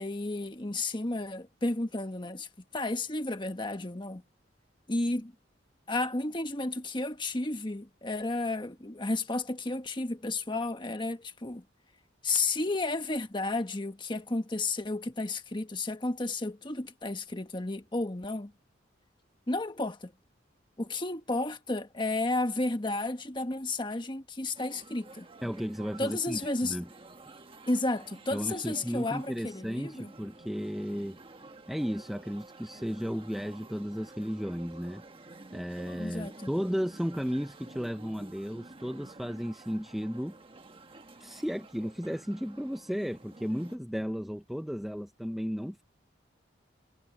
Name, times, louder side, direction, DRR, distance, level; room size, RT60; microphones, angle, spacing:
voice 1, 0.0-2.5 2.7-4.2 4.9-5.3 5.9-11.6 12.2-18.5 19.5-20.1 20.8-25.3 26.0-26.8 27.7-30.1 36.0-36.5, left 2 dB, 25° left, 1.4 m, -32 dB
sound 1, 24.5-43.8, right 2 dB, 30° right, 1.4 m, -51 dB
voice 2, 25.4-26.9 28.3-31.2 31.7-35.0 35.5-40.3 41.2-45.8, equal, ahead, 0.6 m, -34 dB
head